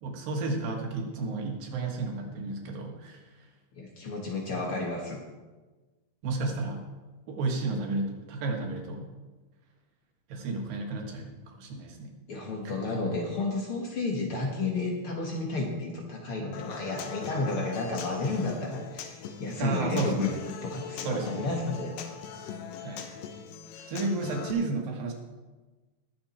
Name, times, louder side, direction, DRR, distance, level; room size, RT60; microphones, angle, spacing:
voice 1, 0.0-3.2 4.5-4.6 6.2-6.8 7.3-9.1 10.3-12.1 12.6-12.7 19.6-20.4 21.0-21.5 22.8-23.2 23.9-25.1, right 3 dB, 90° right, 1 dB, 3.4 m, -32 dB
voice 2, 3.8-5.2 12.3-20.3 20.6-22.0, left 3 dB, 50° left, 0 dB, 1.8 m, -32 dB
Human voice / Acoustic guitar, 16.5-24.5, left 7 dB, 80° left, 2.6 m, -41 dB
20.5 x 7.1 x 4.3 m, 1.2 s
omnidirectional pair, 3.9 m